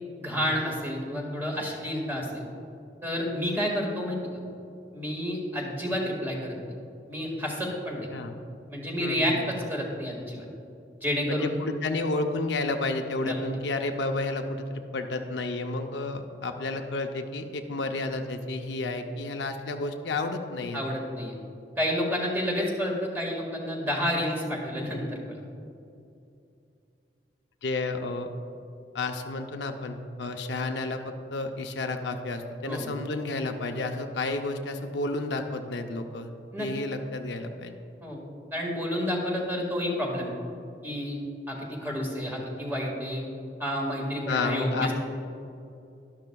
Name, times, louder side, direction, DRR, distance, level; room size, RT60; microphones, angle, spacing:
voice 1, 0.2-2.4 3.0-4.2 4.9-6.6 7.1-8.1 8.7-10.4 11.0-11.6 13.2-13.3 20.7-21.4 21.8-25.4 32.6-32.9 36.5-36.7 38.0-38.3 38.5-40.3 40.8-41.2 41.5-43.2 43.6-44.9, equal, 10° right, -2 dB, 1.8 m, -30 dB
voice 2, 9.0-9.4 11.3-20.8 27.6-28.3 28.9-36.3 36.6-37.7 44.3-44.9, left 2 dB, 70° left, 5 dB, 0.6 m, -31 dB
12.0 x 12.0 x 2.3 m, 2.6 s
head